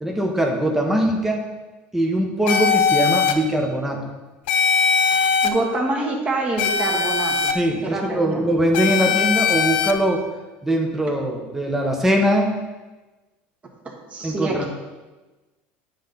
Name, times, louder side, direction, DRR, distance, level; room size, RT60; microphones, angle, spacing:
voice 1, 0.0-1.4 1.9-4.0 7.5-10.3 10.6-12.5 14.2-14.7, right 1 dB, 5° right, 1 dB, 1.0 m, -21 dB
sound 1, 2.5-3.3 4.5-5.5 6.6-7.5 8.7-9.9, left 6 dB, 85° left, 0.6 m, -20 dB
voice 2, 5.4-7.5 7.8-8.4 13.8-14.7, right 2 dB, 25° right, 0 dB, 1.5 m, -26 dB
10.0 x 4.2 x 3.9 m, 1.2 s
supercardioid pair, 125°, 5 cm